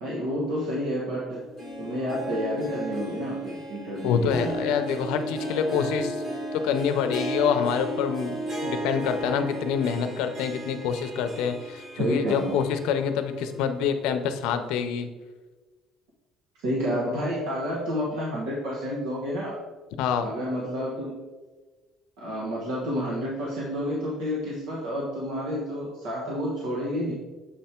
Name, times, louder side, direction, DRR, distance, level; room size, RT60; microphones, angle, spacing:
voice 1, 0.0-1.4 1.8-4.5 12.0-12.5 16.6-19.6 20.2-21.2 22.2-27.1, equal, 85° right, -4 dB, 1.2 m, -29 dB
Harp, 1.3-13.5 13.8-13.9 14.8-14.9, equal, 35° right, 1.2 m, -35 dB
voice 2, 4.0-6.2 6.5-15.1 20.0-20.3, left 7 dB, 85° left, 8 dB, 0.6 m, -26 dB
7.2 x 3.4 x 4.3 m, 1.3 s
cardioid pair, 170°, 0 cm